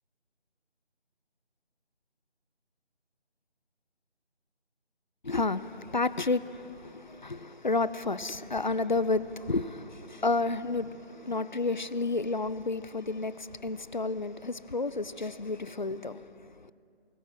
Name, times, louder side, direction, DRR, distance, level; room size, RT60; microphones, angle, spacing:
voice 1, 5.2-16.7, left 3 dB, 45° left, 0.6 m, -31 dB
23.5 x 19.5 x 6.1 m
figure-of-eight pair, 165°, 33 cm